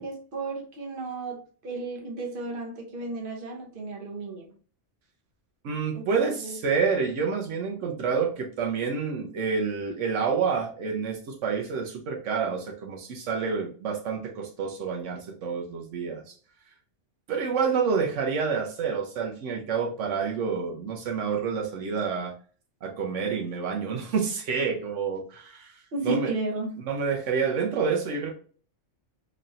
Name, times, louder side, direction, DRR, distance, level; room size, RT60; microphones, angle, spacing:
voice 1, 0.0-1.4 1.6-4.5 5.9-6.6 25.9-26.7, right 2 dB, 50° right, 1.0 m, -33 dB
voice 2, 5.6-16.3 17.3-22.3 22.8-25.8 26.0-26.3 26.8-28.3, right 5 dB, 80° right, 1.0 m, -28 dB
4.0 x 3.3 x 2.4 m
omnidirectional pair, 1.2 m